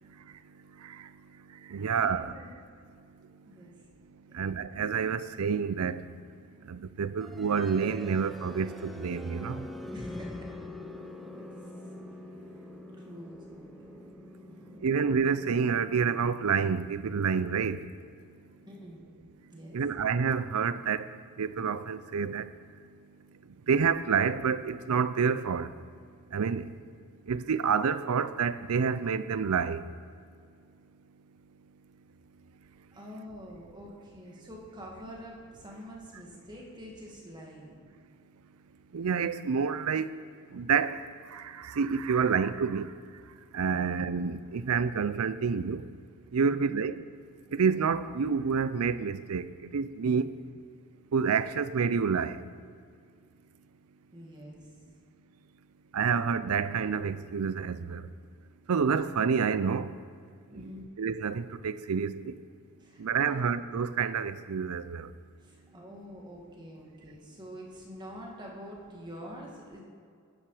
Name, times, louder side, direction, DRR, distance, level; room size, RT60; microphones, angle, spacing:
voice 1, 0.0-2.3 3.0-3.6 4.1-9.8 10.9-11.4 11.9-13.0 14.4-17.9 19.7-22.7 23.7-25.8 26.3-26.9 27.3-29.9 38.9-40.2 40.5-45.9 46.3-47.0 47.5-50.3 51.1-52.4 55.9-58.1 58.7-60.0 61.0-62.4 63.0-65.1, right 6 dB, 85° right, 0.5 m, -29 dB
voice 2, 1.8-2.5 3.4-3.9 9.9-10.6 11.3-11.7 12.4-12.7 13.0-14.0 14.5-14.9 18.7-19.0 19.5-19.8 32.9-37.8 43.7-43.8 46.4-46.8 50.2-50.3 54.1-54.8 60.5-60.8 62.8-63.3 65.4-69.8, equal, 20° right, 2.0 m, -46 dB
sound 1, 7.2-19.1, left 1 dB, ahead, 0.6 m, -46 dB
13.0 x 10.0 x 4.9 m
head